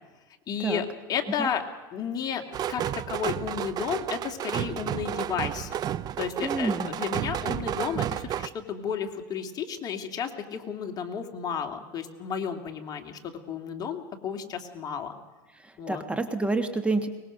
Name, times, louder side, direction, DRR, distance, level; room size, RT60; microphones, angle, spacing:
voice 1, 0.5-1.6 1.9-2.4 2.7-5.8 6.2-15.1 15.8-16.0, left 7 dB, 35° left, 4 dB, 2.7 m, -32 dB
sound 1, 2.5-8.5, right 11 dB, 35° right, 0.7 m, -31 dB
voice 2, 6.4-7.0 15.6-17.1, right 2 dB, 10° right, 9 dB, 1.5 m, -28 dB
23.5 x 21.0 x 6.6 m, 1.3 s
supercardioid pair, 120°, 11 cm